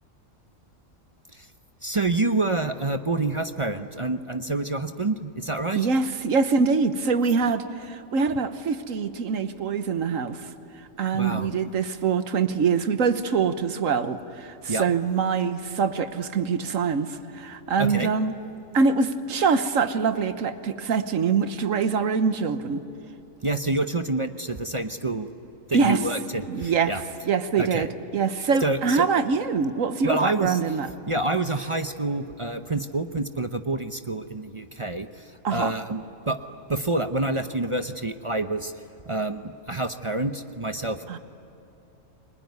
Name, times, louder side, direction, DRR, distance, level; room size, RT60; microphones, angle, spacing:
voice 1, 1.8-5.9 11.1-11.5 14.7-14.9 17.8-18.5 23.4-25.3 25.7-27.0 27.6-27.9 28.6-29.0 30.0-30.6 31.1-36.4 36.7-38.7 39.0-41.2, right 2 dB, 30° right, 8 dB, 0.7 m, -28 dB
voice 2, 5.8-10.5 10.8-18.3 18.7-22.8 25.7-26.0 26.5-26.9 27.3-27.9 28.1-30.9 35.4-35.7 41.1-41.2, right 5 dB, 90° right, 10 dB, 1.5 m, -24 dB
30.0 x 21.0 x 9.5 m, 2.9 s
omnidirectional pair, 1.3 m